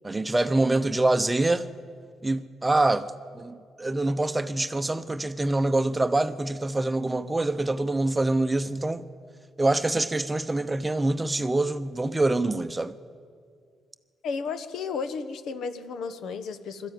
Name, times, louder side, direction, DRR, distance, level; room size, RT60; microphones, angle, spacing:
voice 1, 0.0-1.7 2.2-9.0 9.6-13.0, right 2 dB, 15° right, 0.8 m, -25 dB
voice 2, 14.2-16.9, left 5 dB, 70° left, 1.2 m, -33 dB
21.0 x 13.5 x 9.5 m
cardioid pair, 90°, 0 cm